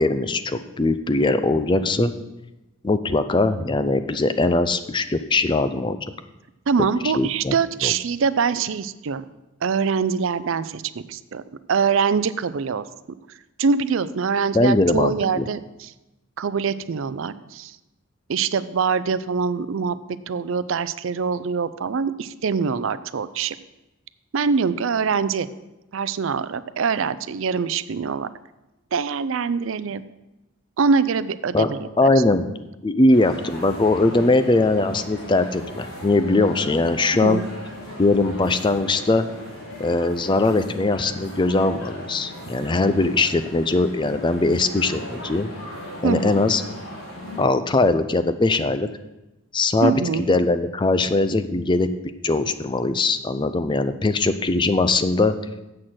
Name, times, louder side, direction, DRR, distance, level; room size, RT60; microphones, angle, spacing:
voice 1, 0.0-2.1 2.8-6.0 7.1-7.6 7.8-7.9 14.5-15.5 31.5-31.7 32.0-32.5 32.8-37.4 38.0-39.3 39.8-45.5 46.0-46.6 47.4-48.9 49.5-49.9 50.3-51.9 52.2-55.4, left 2 dB, 20° left, 10 dB, 0.4 m, -20 dB
voice 2, 6.7-9.2 9.6-10.8 11.1-11.4 11.7-12.8 13.6-15.9 16.4-17.8 18.3-20.0 20.3-23.5 24.3-25.5 25.9-28.3 28.9-30.0 30.8-31.9 37.2-37.5 46.0-46.4 49.8-50.3, right 5 dB, 65° right, 15 dB, 0.4 m, -23 dB
sound 1, 33.1-47.4, equal, 70° left, 3.2 m, -38 dB
7.6 x 6.5 x 7.6 m, 0.99 s
head